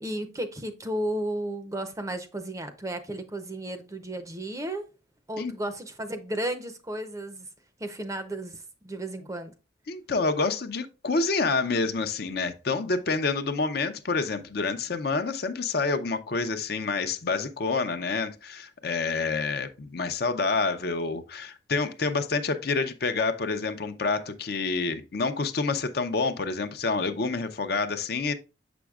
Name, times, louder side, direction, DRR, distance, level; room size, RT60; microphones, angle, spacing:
voice 1, 0.0-4.8 5.3-7.5 7.8-9.5, right 1 dB, 15° right, 0.5 m, -33 dB
voice 2, 9.9-28.3, left 4 dB, 55° left, 0.6 m, -28 dB
7.0 x 6.0 x 2.3 m
head